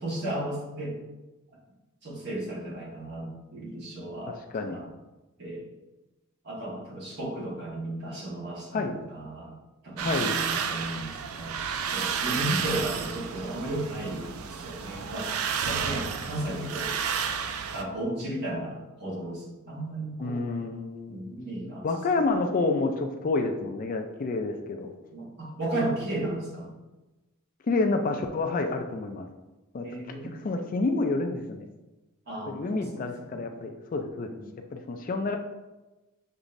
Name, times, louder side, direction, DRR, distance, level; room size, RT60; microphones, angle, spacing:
voice 1, 0.0-0.9 2.0-4.4 4.7-4.8 5.4-5.6 6.4-9.5 9.8-11.5 11.8-15.3 15.6-16.9 17.7-20.5 21.1-21.8 25.1-26.7 29.8-30.4 32.3-33.5 34.3-34.6, right 1 dB, 50° right, -5 dB, 1.5 m, -34 dB
voice 2, 4.3-4.8 8.7-9.0 10.0-10.4 12.3-13.1 20.2-21.4 21.8-24.9 27.7-29.3 29.7-29.9 30.2-31.6 32.5-34.3 34.7-35.4, left 3 dB, 40° left, 6 dB, 0.3 m, -29 dB
sound 1, 10.0-17.8, right 7 dB, 85° right, 0.4 m, -31 dB
6.6 x 3.0 x 2.6 m, 1.1 s
head